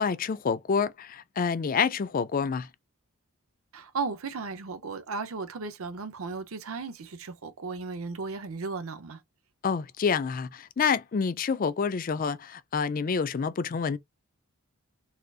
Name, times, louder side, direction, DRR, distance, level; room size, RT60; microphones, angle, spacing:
voice 1, 0.0-2.7 9.6-14.0, left 6 dB, 40° left, 0.3 m, -28 dB
voice 2, 3.7-9.2, right 4 dB, 70° right, 0.6 m, -35 dB
4.2 x 2.4 x 2.3 m
head